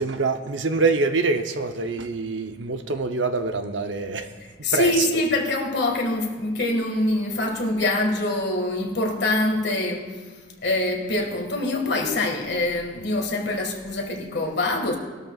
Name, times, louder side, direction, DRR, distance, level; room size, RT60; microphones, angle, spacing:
voice 1, 0.0-4.3 4.7-5.1, right 4 dB, 90° right, 7 dB, 0.8 m, -25 dB
voice 2, 4.6-10.2 10.6-15.0, left 2 dB, 65° left, 1 dB, 1.9 m, -24 dB
19.5 x 12.5 x 2.4 m, 1.4 s
head